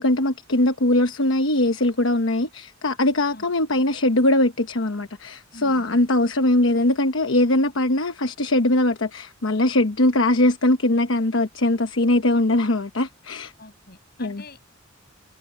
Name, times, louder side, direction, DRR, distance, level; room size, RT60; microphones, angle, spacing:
voice 1, 0.0-13.5 14.2-14.4, left 1 dB, 70° left, 1.1 m, -21 dB
voice 2, 5.5-6.0 13.6-14.6, left 2 dB, 50° left, 6.5 m, -45 dB
head